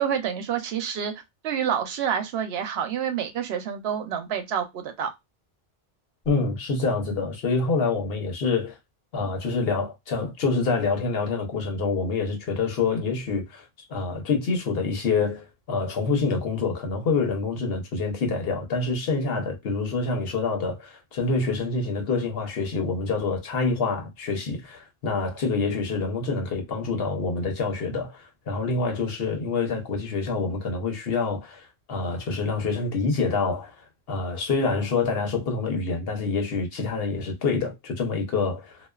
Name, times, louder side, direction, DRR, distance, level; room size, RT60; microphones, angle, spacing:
voice 1, 0.0-5.1, right 8 dB, 85° right, 0.9 m, -28 dB
voice 2, 6.3-8.8 9.1-33.7 34.1-38.8, left 4 dB, 70° left, 1.0 m, -26 dB
2.4 x 2.3 x 2.2 m
omnidirectional pair, 1.0 m